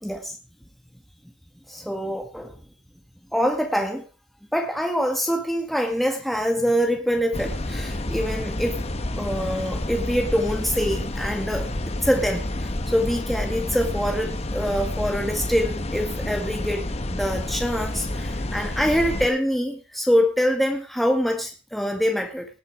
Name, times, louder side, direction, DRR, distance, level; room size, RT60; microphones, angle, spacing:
voice 1, 0.0-0.4 1.7-2.5 3.3-4.0 4.5-8.8 9.2-11.7 12.0-22.5, equal, ahead, 2.0 m, -25 dB
sound 1, 7.3-19.3, left 1 dB, 35° left, 1.1 m, -29 dB
18.5 x 7.6 x 4.8 m
head